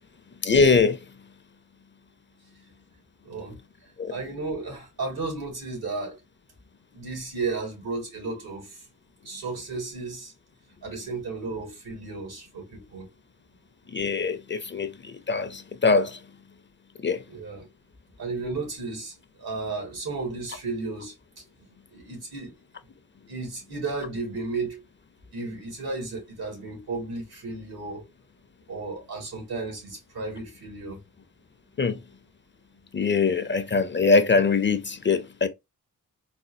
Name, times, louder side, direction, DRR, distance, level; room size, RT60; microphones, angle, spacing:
voice 1, 0.4-1.0 4.0-4.1 13.9-16.2 17.0-17.2 31.8-32.0 32.9-35.5, left 4 dB, 30° left, 0.5 m, -22 dB
voice 2, 3.2-3.6 4.1-6.2 6.9-8.8 9.3-10.3 10.8-13.1 17.3-17.6 18.2-21.1 21.9-22.5 23.3-24.8 25.3-28.0 28.7-31.0, right 3 dB, 90° right, 2.0 m, -33 dB
4.1 x 2.2 x 2.6 m
cardioid pair, 75°, 37 cm